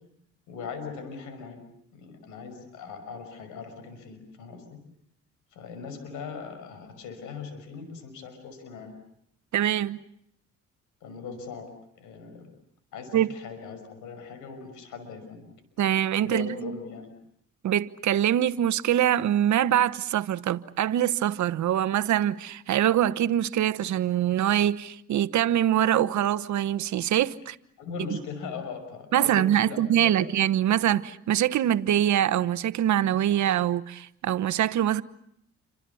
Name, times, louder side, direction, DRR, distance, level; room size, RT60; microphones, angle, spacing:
voice 1, 0.5-1.6 1.9-4.8 5.5-8.9 11.0-12.5 12.9-15.5 16.2-17.1 27.8-30.3, left 5 dB, 90° left, 5.8 m, -40 dB
voice 2, 9.5-10.0 13.1-13.4 15.8-16.7 17.6-27.6 29.1-35.0, right 11 dB, 70° right, 1.2 m, -24 dB
29.0 x 26.0 x 7.0 m
cardioid pair, 90°, 30 cm